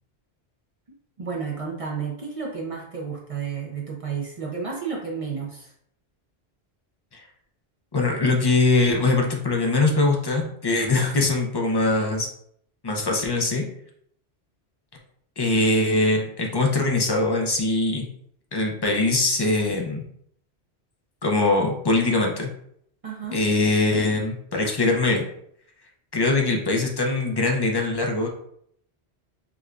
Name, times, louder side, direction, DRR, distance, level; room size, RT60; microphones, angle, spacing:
voice 1, 1.2-5.7 23.0-23.4, right 6 dB, 45° right, -2 dB, 0.5 m, -31 dB
voice 2, 7.9-12.3 12.8-13.7 15.4-18.1 18.5-20.0 21.2-22.5 23.3-25.2 26.1-28.3, left 2 dB, 40° left, 1 dB, 0.3 m, -22 dB
4.9 x 2.2 x 2.4 m, 0.69 s
omnidirectional pair, 1.1 m